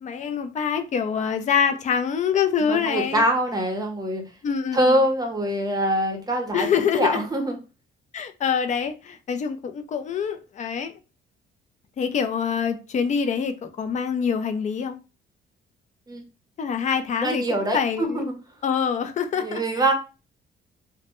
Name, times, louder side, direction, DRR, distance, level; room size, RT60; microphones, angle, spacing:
voice 1, 0.0-3.2 4.4-5.0 6.5-7.3 8.1-10.9 12.0-15.0 16.6-18.2 18.6-19.8, left 7 dB, 40° left, 0.4 m, -25 dB
voice 2, 2.6-4.2 4.7-7.6 16.1-16.2 17.2-18.3 19.4-19.9, right 1 dB, 20° right, 0.7 m, -24 dB
2.1 x 2.0 x 2.9 m
cardioid pair, 90°, 20 cm